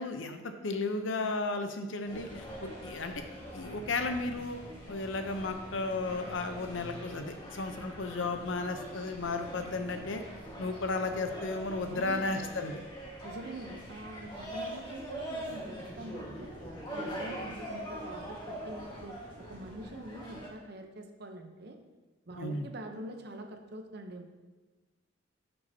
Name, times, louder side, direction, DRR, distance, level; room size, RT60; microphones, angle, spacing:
voice 1, 0.0-3.2 3.5-4.6 4.9-10.2 10.6-12.8 22.3-22.7, left 3 dB, 75° left, 7 dB, 0.7 m, -34 dB
sound 1, 2.1-20.5, equal, 20° left, 1.5 m, -43 dB
voice 2, 11.9-12.3 13.2-16.5 16.9-19.2 19.5-21.8 22.3-24.3, right 1 dB, 55° right, 5 dB, 0.7 m, -44 dB
11.0 x 5.5 x 2.8 m, 1.3 s
head